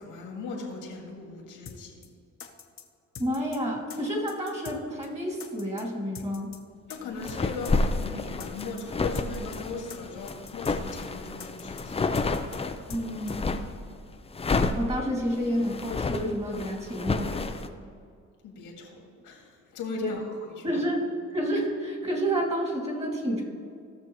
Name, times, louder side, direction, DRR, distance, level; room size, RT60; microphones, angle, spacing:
voice 1, 0.0-2.0 6.9-12.1 18.4-20.2 20.5-20.7, left 3 dB, 85° left, 1 dB, 2.1 m, -38 dB
sound 1, 1.7-1.8 2.0-2.1 2.4-2.8 3.1-3.6 3.9-4.0 4.3-4.8 5.0-5.1 5.4-5.8 6.1-6.6 6.9-7.0 7.3-7.4 7.6-8.1 8.4-8.8 9.1-9.6 9.9-10.0 10.3-10.8 11.0-11.1 11.4-11.8 12.1-12.6 12.9-13.0 13.3-13.4, left 6 dB, 45° left, 1.0 m, -43 dB
voice 2, 3.2-6.5 12.9-13.5 14.7-17.5 20.0-20.1 20.6-23.4, equal, 20° right, -1 dB, 2.4 m, -29 dB
sound 2, 7.2-13.8 14.3-17.7, left 3 dB, 20° left, 0.5 m, -30 dB
16.5 x 6.3 x 3.1 m, 2.1 s
cardioid pair, 90°, 30 cm